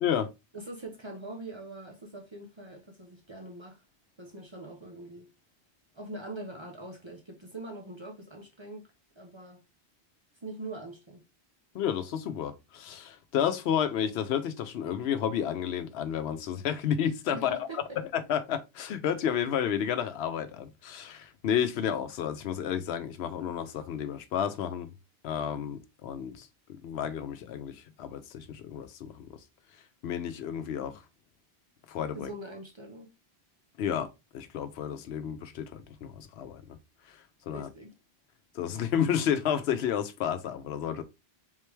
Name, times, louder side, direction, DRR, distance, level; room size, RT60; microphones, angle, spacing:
voice 1, 0.5-3.8 4.2-5.3 5.9-9.6 10.4-11.2 17.3-18.0 32.1-33.1 37.5-37.9, right 2 dB, 30° right, 0.6 m, -43 dB
voice 2, 11.7-17.6 18.1-24.9 25.2-29.4 30.0-31.0 31.9-32.3 33.8-36.8 37.1-37.2 37.5-37.7 38.5-41.0, left 9 dB, 80° left, 0.8 m, -31 dB
3.7 x 3.3 x 3.1 m
omnidirectional pair, 1.1 m